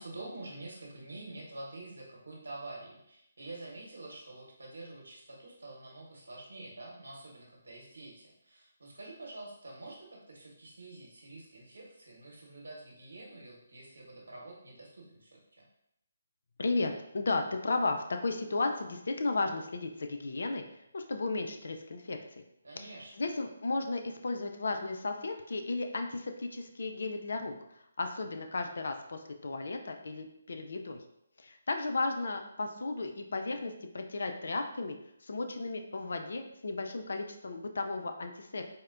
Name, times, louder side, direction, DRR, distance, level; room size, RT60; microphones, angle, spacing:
voice 1, 0.0-15.6 22.6-23.2, right 2 dB, 75° right, -2 dB, 1.0 m, -47 dB
voice 2, 16.6-20.6 20.9-22.4 22.8-22.9 23.2-27.5 28.0-31.0 31.4-38.6, left 3 dB, 65° left, 5 dB, 0.4 m, -34 dB
4.1 x 2.1 x 2.5 m, 0.79 s
figure-of-eight pair, 145°, 0 cm